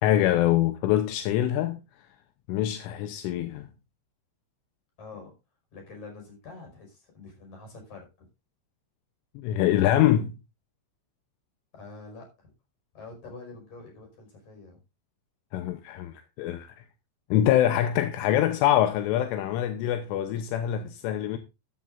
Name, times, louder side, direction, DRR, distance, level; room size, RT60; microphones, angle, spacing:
voice 1, 0.0-1.8 2.5-3.7 9.4-10.3 15.5-16.7 17.3-21.4, left 12 dB, 80° left, 3.4 m, -24 dB
voice 2, 5.0-5.3 5.7-8.3 11.7-12.5 12.9-14.8, left 3 dB, 40° left, 6.3 m, -46 dB
14.0 x 12.5 x 2.6 m
omnidirectional pair, 5.6 m